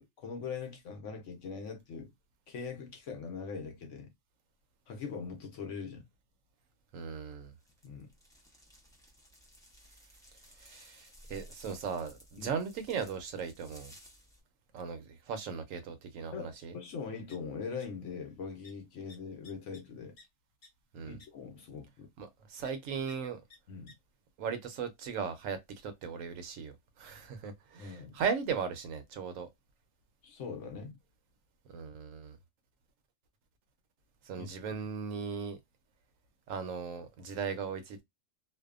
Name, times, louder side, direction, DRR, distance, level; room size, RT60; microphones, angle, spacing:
voice 1, 0.0-2.1 2.5-4.1 4.9-6.0 7.8-8.1 12.4-12.6 16.3-20.1 21.1-22.1 23.7-23.9 27.8-28.2 30.2-31.0 34.4-34.5, left 5 dB, 70° left, 0.9 m, -41 dB
voice 2, 6.9-7.5 10.6-13.9 14.7-16.8 20.9-21.2 22.2-23.4 24.4-29.5 31.7-32.4 34.2-35.6 36.5-38.0, right 6 dB, 80° right, 1.0 m, -37 dB
sound 1, 7.6-14.4, equal, 5° left, 0.3 m, -57 dB
sound 2, 16.6-16.7 16.9-17.8 18.1-18.4 18.6-18.7 19.1-20.2 20.6-20.7 21.2-21.3 22.6-22.7 23.1-23.2 23.5-23.6 23.9-24.0, left 3 dB, 50° left, 1.0 m, -56 dB
2.6 x 2.2 x 2.3 m
omnidirectional pair, 1.4 m